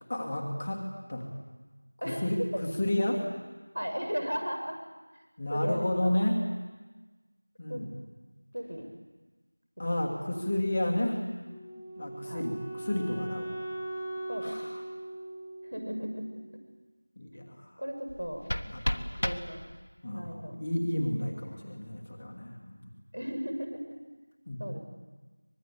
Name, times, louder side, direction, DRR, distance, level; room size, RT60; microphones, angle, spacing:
voice 1, 0.1-1.3 2.0-3.2 5.4-6.4 7.6-7.9 9.8-11.2 12.0-13.5 14.4-14.8 17.2-17.7 18.7-19.1 20.0-22.8 24.5-24.6, left 1 dB, 15° left, 0 dB, 1.5 m, -31 dB
voice 2, 2.0-2.4 3.7-4.8 5.1-5.2 5.5-6.1 7.7-7.8 8.5-8.9 9.8-10.0 12.3-12.4 14.3-14.6 15.6-16.4 17.8-18.4 19.2-19.6 20.1-20.6 23.1-24.0 24.6-24.8, equal, 85° right, 4 dB, 6.7 m, -36 dB
Wind instrument woodwind instrument, 11.5-16.5, right 1 dB, 5° right, 0.9 m, -40 dB
sound 1, 18.1-20.1, equal, 60° left, 1.3 m, -34 dB
24.5 x 21.5 x 8.5 m, 1.3 s
figure-of-eight pair, 180°, 0 cm